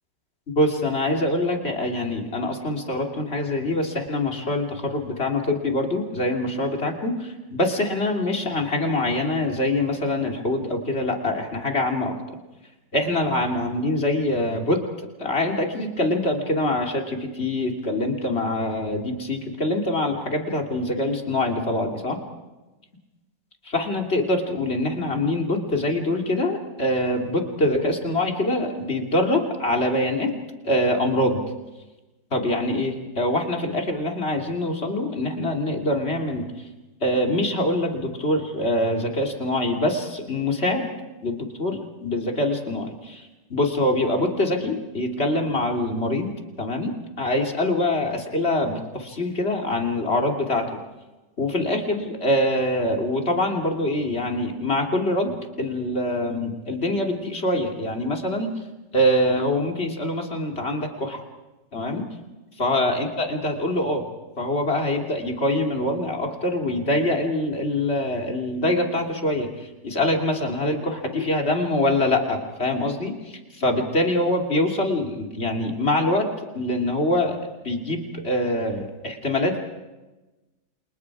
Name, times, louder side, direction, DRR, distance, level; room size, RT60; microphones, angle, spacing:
voice 1, 0.5-12.2 12.9-14.8 15.2-22.2 23.6-30.3 30.6-31.4 32.3-36.7 37.0-40.9 41.2-46.3 46.6-50.8 51.4-58.5 58.9-61.2 61.7-62.1 62.6-64.0 64.4-76.3 76.5-79.6, left 1 dB, 35° left, 2 dB, 3.2 m, -24 dB
29.5 x 27.5 x 4.9 m, 1.1 s
omnidirectional pair, 1.9 m